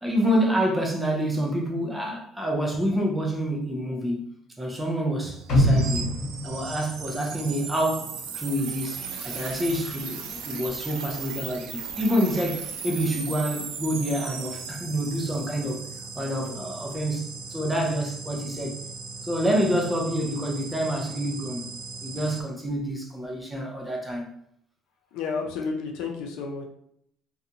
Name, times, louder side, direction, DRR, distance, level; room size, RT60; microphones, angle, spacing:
voice 1, 0.0-6.2 6.4-15.8 16.2-18.8 19.2-21.7 22.0-24.3, equal, 5° right, 0 dB, 0.4 m, -27 dB
sound 1, 5.2-22.4, right 5 dB, 70° right, 0.4 m, -37 dB
sound 2, 5.5-7.7 8.0-8.1, equal, 55° left, 1.2 m, -24 dB
voice 2, 25.1-26.7, left 4 dB, 75° left, 1 dB, 0.5 m, -31 dB
2.6 x 2.2 x 2.7 m, 0.71 s
cardioid pair, 165°, 0 cm